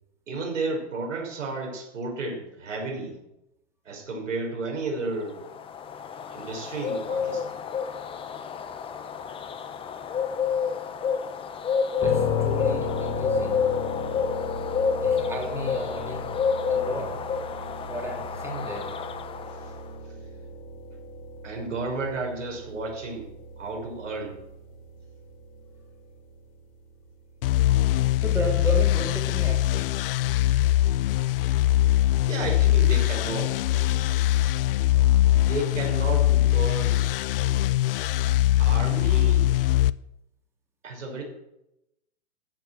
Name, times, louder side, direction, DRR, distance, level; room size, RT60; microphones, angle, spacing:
voice 1, 0.3-3.2 3.8-5.4 6.3-7.5 21.4-23.3 23.6-24.4 32.3-33.6 35.3-37.1 38.6-39.5 40.8-41.2, right 3 dB, 85° right, 1 dB, 6.0 m, -32 dB
sound 1, 5.2-19.8, left 6 dB, 15° left, 0.9 m, -30 dB
sound 2, 12.0-25.7, left 5 dB, 30° left, 2.9 m, -34 dB
voice 2, 12.0-13.6 15.0-16.4 16.7-17.1 17.9-18.9 28.2-29.9, right 1 dB, 5° right, 0 dB, 2.9 m, -33 dB
sound 3, 27.4-39.9, left 14 dB, 50° left, 0.6 m, -22 dB
15.0 x 8.0 x 7.6 m, 0.88 s
hypercardioid pair, 135°, 37 cm